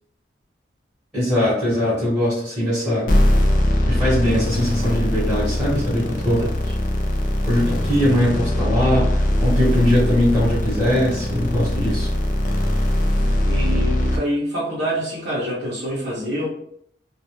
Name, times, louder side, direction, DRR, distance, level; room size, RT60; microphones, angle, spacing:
voice 1, 1.1-3.1 3.9-6.4 7.4-12.1, left 1 dB, 5° right, -12 dB, 1.0 m, -21 dB
sound 1, 3.1-14.2, left 1 dB, 45° left, 0.4 m, -21 dB
voice 2, 6.2-6.7 13.4-16.5, equal, 65° right, -8 dB, 0.7 m, -26 dB
2.2 x 2.1 x 2.9 m, 0.68 s
head